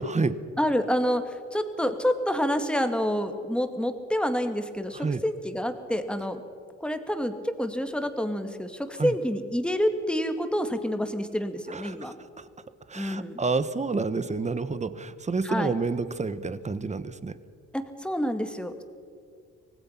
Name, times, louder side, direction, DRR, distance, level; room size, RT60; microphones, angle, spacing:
voice 1, 0.0-0.4 4.9-5.2 9.0-9.1 11.7-12.2 12.9-17.3, right 4 dB, 25° right, 14 dB, 1.2 m, -29 dB
voice 2, 0.6-6.4 6.8-12.1 12.9-13.4 15.4-15.7 17.7-18.8, equal, 5° left, 7 dB, 2.1 m, -28 dB
25.0 x 18.5 x 5.9 m, 2.3 s
cardioid pair, 90°, 30 cm